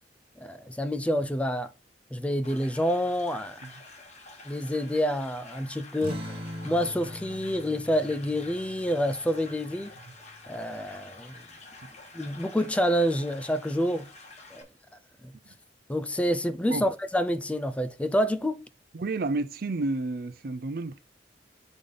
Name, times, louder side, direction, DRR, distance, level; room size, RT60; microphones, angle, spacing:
voice 1, 0.4-1.7 2.1-3.6 4.5-6.4 6.6-9.9 10.5-11.3 12.1-14.1 14.5-14.7 15.9-18.6, equal, 5° left, 0.4 m, -28 dB
sound 1, 2.4-14.6, left 3 dB, 40° left, 1.5 m, -49 dB
sound 2, 6.0-11.0, left 1 dB, 35° right, 1.1 m, -42 dB
voice 2, 18.9-21.0, right 2 dB, 55° right, 0.5 m, -30 dB
5.1 x 5.1 x 4.0 m
head